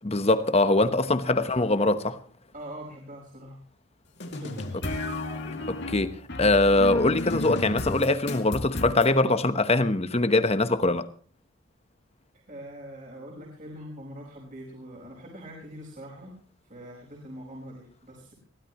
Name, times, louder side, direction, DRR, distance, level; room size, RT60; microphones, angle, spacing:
voice 1, 0.0-2.2 5.7-11.1, left 2 dB, 30° left, 1.0 m, -23 dB
voice 2, 2.5-3.6 4.2-4.9 12.5-16.3 16.6-18.3, equal, 40° right, 4.9 m, -43 dB
sound 1, 4.2-9.1, left 2 dB, 55° left, 2.4 m, -33 dB
22.5 x 16.5 x 3.0 m
head